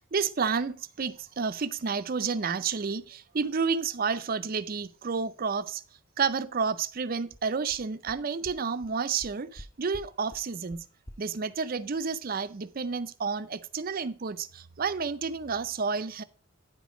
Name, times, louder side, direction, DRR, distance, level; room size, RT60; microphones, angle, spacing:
voice 1, 0.0-5.8 6.2-10.8 11.2-16.2, right 5 dB, 45° right, 0.5 m, -30 dB
sound 1, 7.0-7.1 7.3-7.4 7.7-7.8 8.1-8.2 8.4-8.5 8.8-8.9 9.2-9.6 9.9-10.0 10.3-10.4 10.7-10.8 11.1-11.2, equal, 15° left, 0.5 m, -45 dB
9.7 x 5.0 x 5.0 m
head